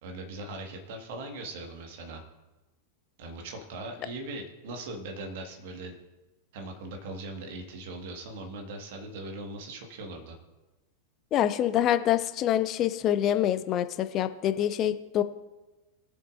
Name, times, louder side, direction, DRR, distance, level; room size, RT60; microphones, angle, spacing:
voice 1, 0.0-2.2 3.2-5.9 6.5-10.4, right 2 dB, 50° right, 3 dB, 1.7 m, -40 dB
voice 2, 11.3-15.2, left 11 dB, 35° left, 11 dB, 0.5 m, -26 dB
21.0 x 7.1 x 2.6 m, 1.1 s
figure-of-eight pair, 90°, 0 cm